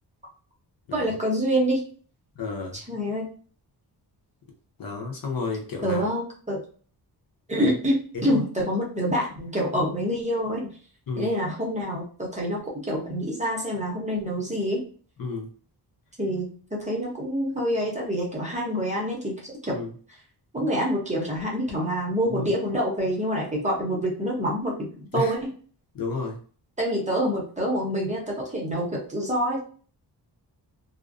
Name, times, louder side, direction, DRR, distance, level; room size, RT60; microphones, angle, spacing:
voice 1, 0.9-1.8 2.7-3.3 5.8-6.6 7.5-10.7 11.2-14.8 16.2-19.8 20.5-25.5 26.8-29.6, equal, 20° right, -3 dB, 0.7 m, -26 dB
voice 2, 2.4-2.8 4.8-6.0 7.6-7.7 8.3-8.4 11.1-11.3 15.2-15.5 19.7-19.9 22.3-22.4 25.1-25.3 25.9-26.4, left 4 dB, 55° left, 0 dB, 0.8 m, -31 dB
2.4 x 2.1 x 2.4 m, 0.42 s
wide cardioid pair, 130°, 40 cm